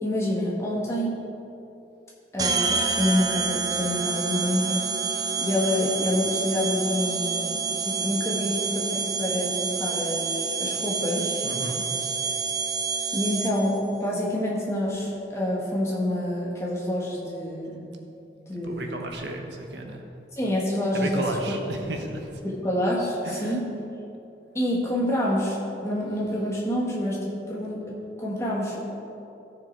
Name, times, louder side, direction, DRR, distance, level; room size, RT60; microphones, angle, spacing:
voice 1, 0.0-1.2 2.3-4.8 5.4-11.4 13.1-17.9 18.5-19.0 20.4-21.2 22.4-23.7 24.5-27.8 28.2-28.9, left 1 dB, 15° left, -4 dB, 1.8 m, -27 dB
sound 1, 2.4-13.8, right 5 dB, 20° right, 0.6 m, -28 dB
voice 2, 11.4-11.8 18.6-20.0 20.9-22.3 23.2-23.6, right 1 dB, 85° right, 2 dB, 1.3 m, -33 dB
14.0 x 6.8 x 4.7 m, 2.8 s
head